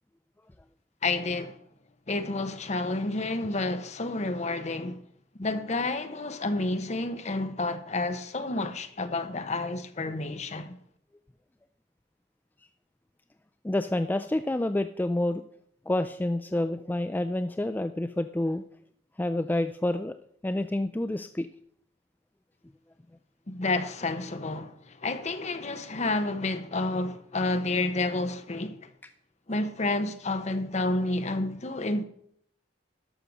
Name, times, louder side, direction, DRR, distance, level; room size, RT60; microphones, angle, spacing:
voice 1, 1.0-1.6 2.1-5.0 5.3-10.8 23.5-28.9 29.5-32.0, left 2 dB, 40° left, 0.9 m, -30 dB
voice 2, 13.6-15.4 15.9-18.6 19.2-20.1 20.4-21.5, left 1 dB, 10° left, 0.3 m, -28 dB
12.0 x 6.6 x 6.1 m
head